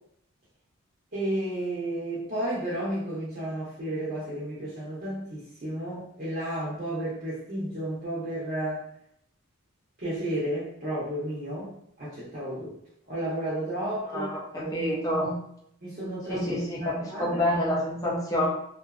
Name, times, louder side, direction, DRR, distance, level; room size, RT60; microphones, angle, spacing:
voice 1, 1.1-8.9 10.0-12.7 13.1-15.0 15.8-16.4 16.8-17.4, right 1 dB, 40° right, -9 dB, 0.8 m, -32 dB
voice 2, 14.1-15.4 16.3-18.5, left 1 dB, 15° left, -5 dB, 0.4 m, -28 dB
2.5 x 2.3 x 2.3 m, 0.72 s
head